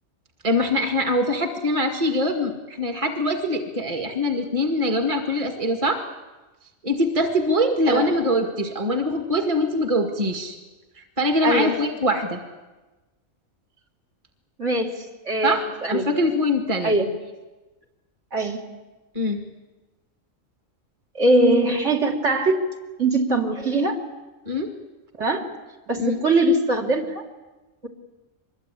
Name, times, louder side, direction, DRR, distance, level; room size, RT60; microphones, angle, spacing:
voice 1, 0.4-6.0 6.8-10.6 11.0-12.4 15.4-17.0 19.1-19.4 24.5-24.7 26.0-26.2, left 1 dB, 25° right, 4 dB, 2.0 m, -23 dB
voice 2, 11.4-11.8 14.6-16.0 16.8-17.1 18.3-18.6 21.2-22.6 23.0-24.0 25.2-25.4 25.9-27.2, right 2 dB, 60° right, 0 dB, 3.5 m, -21 dB
25.0 x 22.0 x 8.5 m, 1.1 s
omnidirectional pair, 1.4 m